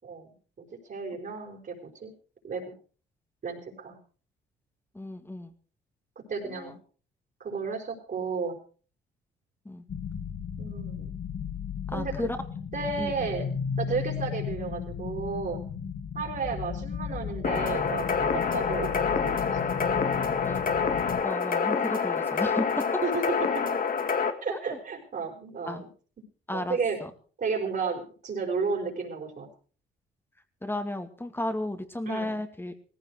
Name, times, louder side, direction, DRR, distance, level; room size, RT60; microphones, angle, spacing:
voice 1, 0.0-2.1 2.4-2.6 3.4-4.0 6.3-6.7 7.4-8.6 10.6-11.1 11.9-12.3 12.7-13.5 13.8-15.6 16.1-19.6 23.0-23.6 24.4-25.9 26.5-27.0 27.4-29.5 32.0-32.4, right 5 dB, 50° right, -3 dB, 5.0 m, -33 dB
voice 2, 4.9-5.5 6.5-6.7 9.7-9.8 11.9-12.4 13.0-13.2 20.4-20.6 21.2-22.7 24.5-24.8 25.7-25.8 26.5-27.1 30.6-32.7, left 1 dB, 10° left, 6 dB, 2.2 m, -34 dB
sound 1, 9.9-21.2, left 7 dB, 65° left, 4.4 m, -35 dB
sound 2, 17.4-24.3, left 5 dB, 45° left, 2.1 m, -27 dB
18.0 x 15.5 x 4.8 m, 0.41 s
cardioid pair, 90°, 20 cm